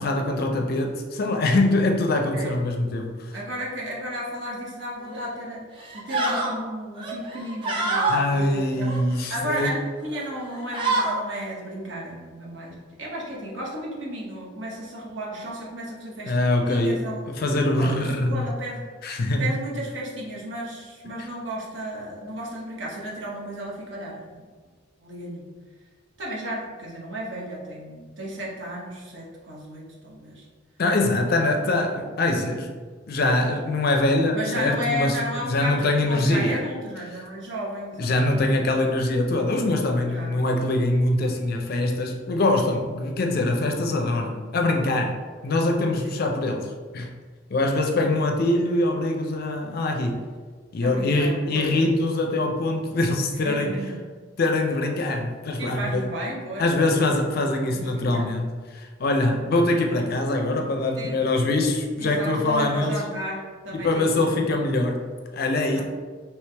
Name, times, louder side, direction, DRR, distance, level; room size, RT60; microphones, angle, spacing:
voice 1, 0.0-3.3 8.1-9.7 16.3-17.0 17.3-18.5 19.0-19.5 30.8-32.7 33.1-35.2 35.4-36.6 38.0-47.1 47.5-50.3 50.7-53.7 54.4-56.0 56.6-62.9 63.7-65.1 65.3-65.8, left 2 dB, 50° left, 3 dB, 0.4 m, -23 dB
voice 2, 3.3-5.7 5.9-8.9 9.3-16.3 16.7-17.2 17.7-18.9 19.4-24.4 25.0-25.5 26.2-30.5 31.5-31.6 34.3-38.1 40.1-40.5 46.0-46.1 50.8-51.8 53.4-54.0 55.6-57.2 57.5-58.3 61.0-61.2 62.0-64.4 65.7-65.8, right 1 dB, 70° right, -4 dB, 0.9 m, -34 dB
sound 1, 5.1-5.3 5.8-6.5 7.0-8.2 8.8-9.6 10.1-10.3 10.5-11.2, right 2 dB, 25° right, 0.6 m, -26 dB
3.2 x 3.1 x 3.3 m, 1.5 s
head